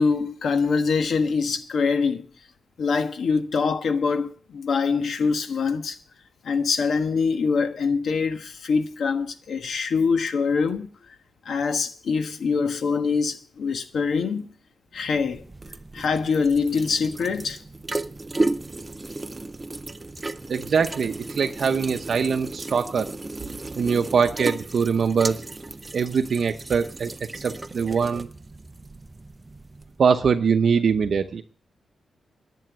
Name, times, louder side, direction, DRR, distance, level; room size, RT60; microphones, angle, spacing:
voice 1, 0.0-2.3 2.8-6.0 6.4-11.2 11.4-14.5 14.9-15.4 15.9-17.6, left 5 dB, 65° left, 1.4 m, -24 dB
sound 1, 15.0-30.0, right 2 dB, 20° right, 0.6 m, -34 dB
voice 2, 20.5-23.1 23.8-25.4 25.9-27.1 27.4-28.3 30.0-31.4, right 6 dB, 50° right, 0.7 m, -22 dB
11.0 x 7.8 x 9.0 m
wide cardioid pair, 140°, 0 cm